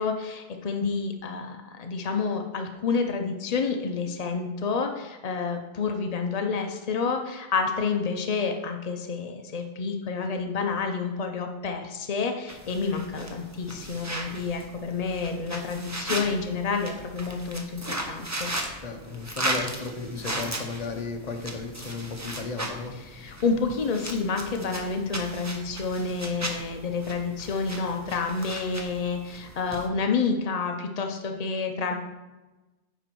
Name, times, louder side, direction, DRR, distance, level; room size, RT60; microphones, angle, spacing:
voice 1, 0.0-18.5 23.0-31.9, left 4 dB, 65° left, 4 dB, 0.3 m, -29 dB
sound 1, 12.5-29.9, right 1 dB, 15° right, 0.6 m, -36 dB
voice 2, 18.8-22.9, left 4 dB, 35° left, 3 dB, 0.9 m, -34 dB
9.1 x 5.1 x 4.5 m, 1.1 s
omnidirectional pair, 1.5 m